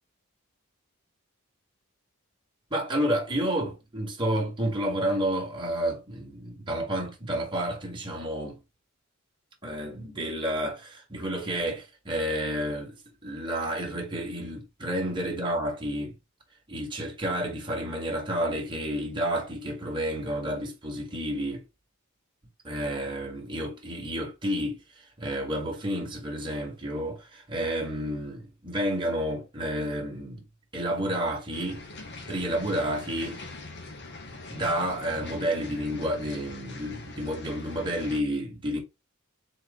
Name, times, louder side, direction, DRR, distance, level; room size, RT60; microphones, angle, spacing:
voice 1, 2.7-8.6 9.6-13.0 13.2-16.2 16.7-21.6 22.6-24.8 25.2-30.4 30.7-31.9 32.3-33.4 34.5-38.8, equal, 25° right, 1.8 m, -30 dB
sound 1, 31.5-38.2, left 2 dB, 55° left, 1.2 m, -43 dB
4.1 x 3.2 x 3.7 m
head